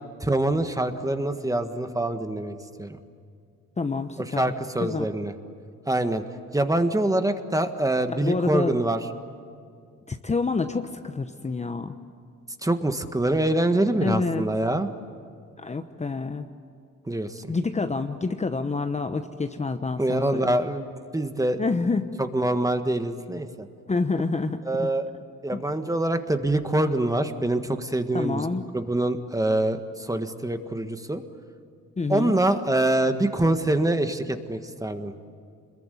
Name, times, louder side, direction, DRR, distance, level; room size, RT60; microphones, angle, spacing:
voice 1, 0.2-3.0 4.2-5.3 5.9-6.2 6.5-9.0 12.6-14.9 17.1-17.5 20.0-21.6 22.2-23.7 24.6-25.1 25.4-28.5 28.7-31.2 32.1-35.1, right 1 dB, 10° right, 8 dB, 1.6 m, -25 dB
voice 2, 3.8-4.5 4.8-5.1 8.1-8.7 10.1-11.9 14.0-14.4 15.6-16.5 17.5-20.5 21.6-22.1 23.9-24.9 25.5-25.6 28.1-28.6 32.0-32.4, left 3 dB, 20° left, 7 dB, 1.0 m, -27 dB
26.5 x 21.5 x 9.3 m, 2.3 s
cardioid pair, 90°, 30 cm